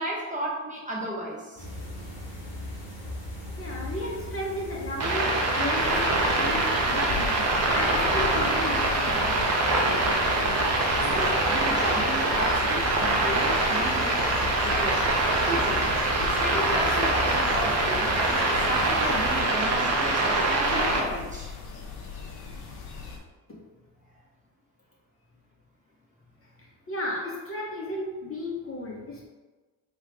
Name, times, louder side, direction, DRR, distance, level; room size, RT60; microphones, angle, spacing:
voice 1, 0.0-1.7 11.0-14.3 14.6-14.9 15.5-15.8 16.2-21.5, right 1 dB, 15° right, -5 dB, 1.1 m, -34 dB
sound 1, 1.6-19.4, left 1 dB, 70° left, 1.3 m, -38 dB
voice 2, 1.7-2.0 3.6-5.3 5.5-9.4 23.5-23.6 26.4-29.3, left 1 dB, 30° left, -4 dB, 1.0 m, -35 dB
sound 2, 5.0-21.0, right 2 dB, 35° right, 0.7 m, -24 dB
sound 3, 5.8-23.2, left 5 dB, 50° left, 0.8 m, -38 dB
3.2 x 2.3 x 3.6 m, 1.3 s
hypercardioid pair, 50°, 47 cm